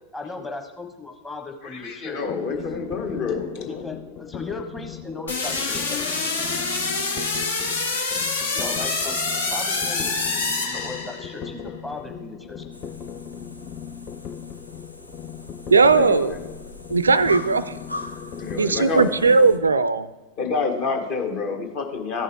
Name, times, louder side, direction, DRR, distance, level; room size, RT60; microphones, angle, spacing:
voice 1, 0.1-2.2 2.5-2.6 3.7-6.0 8.5-9.2 9.5-12.6, left 3 dB, 10° left, 3 dB, 1.2 m, -36 dB
voice 2, 1.6-3.8 15.9-16.4 18.4-19.5 20.4-22.2, left 4 dB, 45° left, 3 dB, 1.5 m, -28 dB
sound 1, 2.3-19.8, left 9 dB, 30° left, 0.5 m, -38 dB
sound 2, 5.3-11.5, left 3 dB, 70° left, 1.1 m, -26 dB
sound 3, 12.7-19.6, left 1 dB, 85° left, 0.6 m, -41 dB
voice 3, 15.7-16.4 16.9-17.7 18.6-20.1, right 4 dB, 75° right, 16 dB, 0.3 m, -18 dB
14.5 x 5.4 x 3.4 m, 1.2 s
figure-of-eight pair, 90°, 0 cm